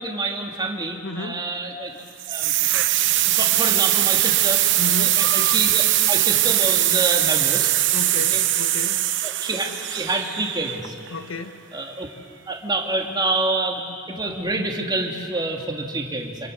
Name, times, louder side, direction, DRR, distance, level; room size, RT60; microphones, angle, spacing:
voice 1, 0.0-2.8 3.3-4.6 5.0-7.7 8.1-8.4 9.2-10.9 11.7-12.1 12.5-16.5, right 2 dB, 20° right, 0 dB, 2.7 m, -27 dB
voice 2, 1.0-1.5 4.8-5.2 7.9-9.1 11.1-11.6, left 3 dB, 80° left, 7 dB, 1.6 m, -33 dB
sound 1, 2.2-11.1, right 14 dB, 65° right, 0.9 m, -21 dB
30.0 x 27.0 x 6.8 m, 2.5 s
head